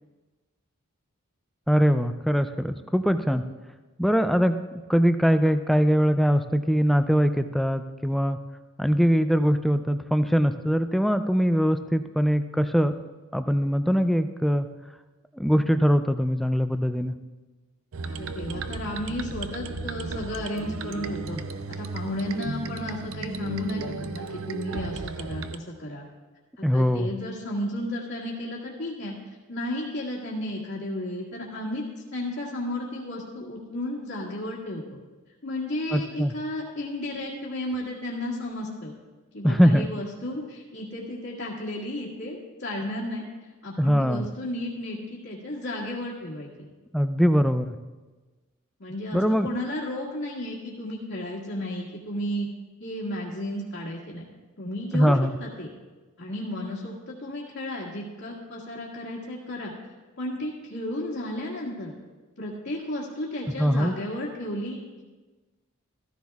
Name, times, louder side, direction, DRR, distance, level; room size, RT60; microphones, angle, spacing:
voice 1, 1.7-3.4 4.0-4.6 4.9-8.4 8.8-12.9 13.3-14.7 15.3-17.1 26.6-27.1 35.9-36.3 39.4-39.9 43.8-44.3 46.9-47.8 49.1-49.5 54.9-55.4 63.6-63.9, equal, ahead, 9 dB, 0.3 m, -22 dB
sound 1, 17.9-25.6, right 3 dB, 65° right, 0.5 m, -34 dB
voice 2, 18.1-21.4 21.8-26.0 26.6-29.2 29.5-31.8 32.1-35.0 35.4-38.9 39.3-46.5 48.8-52.5 52.8-54.3 54.6-55.7 56.2-59.7 60.2-61.9 62.4-65.0, left 1 dB, 65° left, -7 dB, 1.8 m, -33 dB
14.5 x 14.5 x 2.4 m, 1.3 s
head